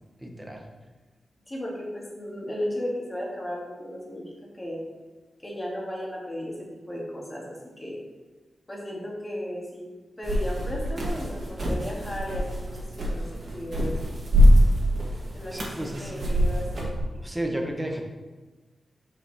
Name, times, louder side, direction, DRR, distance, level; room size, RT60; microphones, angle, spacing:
voice 1, 0.2-0.6 15.5-16.2 17.1-18.0, right 1 dB, 10° right, 2 dB, 1.2 m, -32 dB
voice 2, 1.5-4.2 4.5-4.8 5.4-7.9 8.7-9.9 10.2-13.9 15.3-16.9, equal, 20° left, -3 dB, 2.3 m, -35 dB
sound 1, 10.2-17.0, equal, 60° right, 2.1 m, -24 dB
6.0 x 5.6 x 4.3 m, 1.3 s
wide cardioid pair, 85°, 0 cm